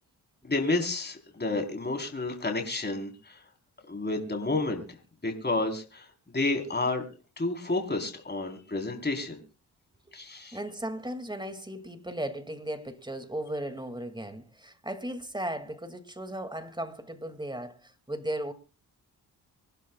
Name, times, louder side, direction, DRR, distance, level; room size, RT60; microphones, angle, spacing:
voice 1, 0.4-3.4 3.9-4.8 5.2-6.1 6.3-7.1 7.4-9.4 10.1-10.6, left 2 dB, 25° left, 4.1 m, -30 dB
voice 2, 10.5-18.5, right 1 dB, 10° right, 2.3 m, -36 dB
25.0 x 11.5 x 2.4 m
supercardioid pair, 50°, 39 cm